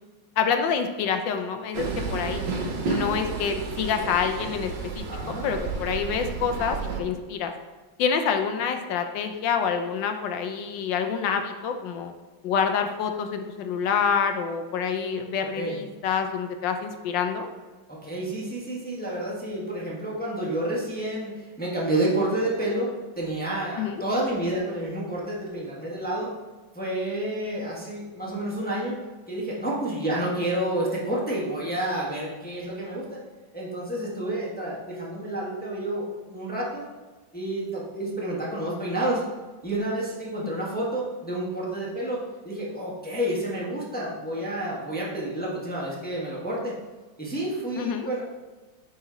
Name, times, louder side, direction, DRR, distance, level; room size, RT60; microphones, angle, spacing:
voice 1, 0.4-2.4 2.9-5.0 5.4-7.5 8.0-12.1 12.4-17.5 23.8-24.0 47.8-48.1, left 6 dB, 75° left, 6 dB, 1.3 m, -27 dB
Train, 1.7-7.0, right 4 dB, 65° right, 1.5 m, -31 dB
voice 2, 5.1-5.4 15.6-15.8 17.9-26.3 26.7-29.0 29.3-33.2 33.5-36.8 37.3-39.2 39.6-46.8 47.2-48.2, right 1 dB, 5° left, -5 dB, 1.0 m, -29 dB
8.0 x 4.1 x 3.9 m, 1.3 s
omnidirectional pair, 2.1 m